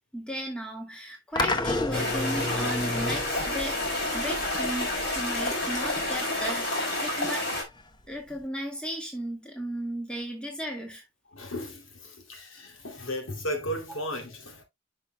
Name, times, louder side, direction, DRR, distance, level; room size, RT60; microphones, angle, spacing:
voice 1, 0.1-3.8 4.1-7.5 8.1-11.0, equal, 5° left, 2.0 m, -35 dB
sound 1, 1.4-8.4, left 2 dB, 20° left, 0.9 m, -34 dB
sound 2, 1.9-7.6, left 1 dB, 50° left, 4.3 m, -29 dB
voice 2, 11.3-14.6, equal, 75° left, 2.6 m, -35 dB
10.5 x 5.7 x 2.2 m
head